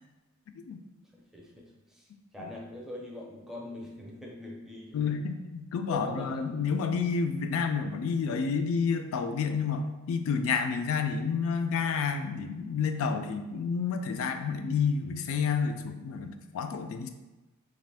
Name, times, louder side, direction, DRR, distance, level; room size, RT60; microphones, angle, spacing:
voice 1, 1.1-2.1 2.3-5.1 5.9-6.6, left 1 dB, ahead, -2 dB, 0.5 m, -43 dB
voice 2, 4.9-17.1, left 5 dB, 70° left, 8 dB, 0.3 m, -30 dB
2.9 x 2.5 x 3.3 m, 1.1 s
head